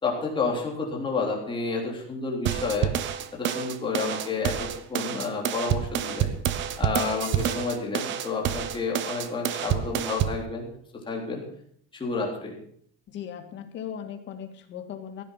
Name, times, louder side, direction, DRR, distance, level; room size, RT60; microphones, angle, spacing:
voice 1, 0.0-2.9 3.3-6.3 6.8-11.4 11.9-12.6, left 4 dB, 15° left, -1 dB, 3.6 m, -30 dB
sound 1, 2.5-10.4, right 10 dB, 35° right, 0.9 m, -28 dB
voice 2, 13.1-15.2, left 9 dB, 35° left, 6 dB, 1.9 m, -38 dB
16.0 x 10.5 x 5.9 m, 0.62 s
cardioid pair, 165°, 33 cm